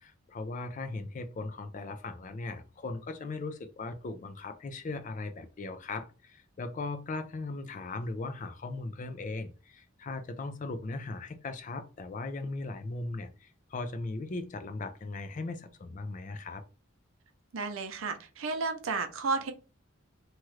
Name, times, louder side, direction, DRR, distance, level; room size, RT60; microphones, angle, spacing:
voice 1, 0.0-16.6, left 3 dB, 40° left, 0.4 m, -38 dB
voice 2, 17.5-19.5, right 4 dB, 80° right, 0.6 m, -32 dB
2.9 x 2.3 x 3.1 m
head